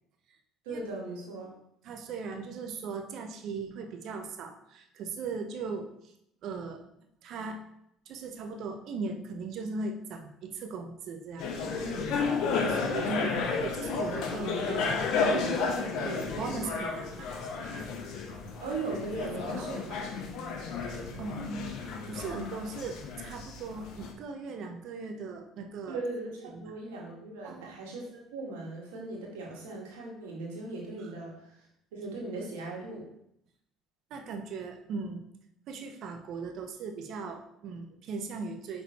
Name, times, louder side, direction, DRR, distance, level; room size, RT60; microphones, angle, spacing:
voice 1, 0.6-1.5 11.8-12.2 13.1-13.4 18.6-20.6 25.9-31.7 31.9-33.1, right 2 dB, 85° right, -3 dB, 1.9 m, -39 dB
voice 2, 1.8-6.1 6.4-6.8 7.2-7.6 8.1-11.7 12.6-17.3 19.2-19.8 20.8-26.0 26.5-26.7 27.4-27.8 31.0-31.1 34.1-35.2 35.7-38.8, right 4 dB, 65° right, 4 dB, 0.9 m, -38 dB
crowded-lecturehall, 11.4-24.1, left 4 dB, 70° left, 1.0 m, -32 dB
6.0 x 3.9 x 4.3 m, 0.76 s
supercardioid pair, 70°, 0 cm